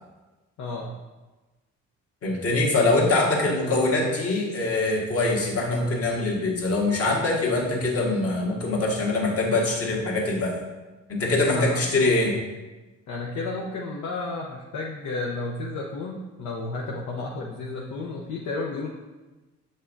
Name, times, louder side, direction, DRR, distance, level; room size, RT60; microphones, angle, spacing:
voice 1, 0.6-0.9 11.4-12.1 13.1-18.9, left 3 dB, 75° left, -2 dB, 0.8 m, -32 dB
voice 2, 2.2-10.5 11.1-12.3, left 2 dB, 50° left, -2 dB, 1.6 m, -23 dB
7.1 x 5.4 x 2.6 m, 1.2 s
cardioid pair, 90°, 30 cm